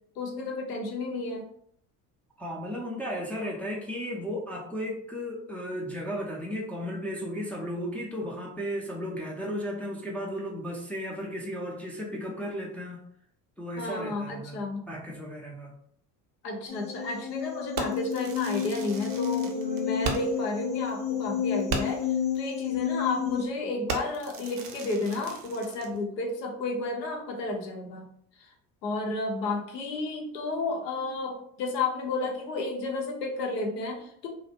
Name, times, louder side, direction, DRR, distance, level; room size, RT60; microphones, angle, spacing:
voice 1, 0.2-1.5 13.8-14.8 16.4-22.0 22.4-28.1 28.8-34.3, left 2 dB, 85° left, 1 dB, 0.7 m, -32 dB
voice 2, 2.4-13.0 13.6-15.7, equal, 5° left, -3 dB, 0.4 m, -35 dB
sound 1, 16.7-23.5, left 8 dB, 35° left, 0.9 m, -31 dB
Fireworks, 17.8-20.5 20.8-20.9 21.3-21.4 21.7-22.1 22.7-22.9 23.3-23.5 23.9-26.0, right 4 dB, 45° right, 0.6 m, -36 dB
2.3 x 2.0 x 2.7 m, 0.66 s
hypercardioid pair, 60°, 47 cm